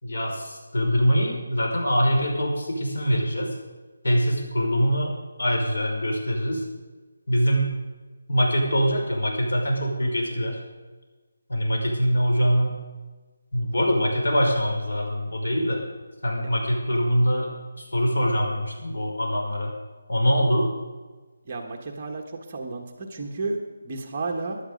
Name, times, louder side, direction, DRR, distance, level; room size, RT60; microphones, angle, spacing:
voice 1, 0.0-3.5 4.0-5.1 5.4-6.6 7.3-7.7 8.3-10.6 11.5-12.8 13.5-15.8 16.2-19.7 20.1-20.7, equal, 70° left, 0 dB, 5.3 m, -23 dB
voice 2, 21.5-22.2 22.5-23.6 23.8-24.6, right 3 dB, 25° right, 1 dB, 1.4 m, -31 dB
16.0 x 11.5 x 5.3 m, 1.3 s
hypercardioid pair, 175°, 0 cm